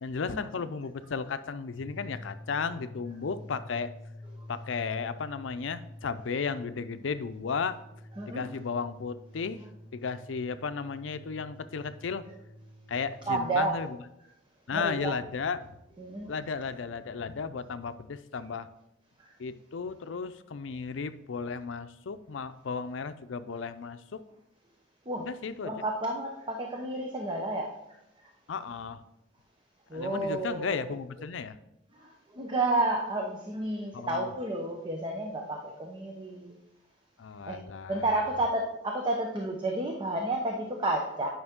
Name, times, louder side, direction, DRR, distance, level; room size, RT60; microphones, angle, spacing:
voice 1, 0.0-3.9 4.5-7.8 8.3-9.6 9.9-12.2 12.9-14.0 14.7-15.7 16.3-18.7 19.4-24.2 25.2-25.7 28.5-29.0 29.9-31.6 33.9-34.3 37.2-38.2, left 5 dB, 85° left, 12 dB, 0.5 m, -34 dB
sound 1, 1.7-13.5, left 1 dB, 20° left, 1.5 m, -48 dB
voice 2, 13.3-13.8 14.7-15.1 16.0-16.3 25.1-25.3 25.6-27.7 29.9-30.9 32.0-36.6 37.5-37.6 37.9-41.3, right 2 dB, 25° right, 1 dB, 0.8 m, -31 dB
9.5 x 5.7 x 3.6 m, 0.85 s
head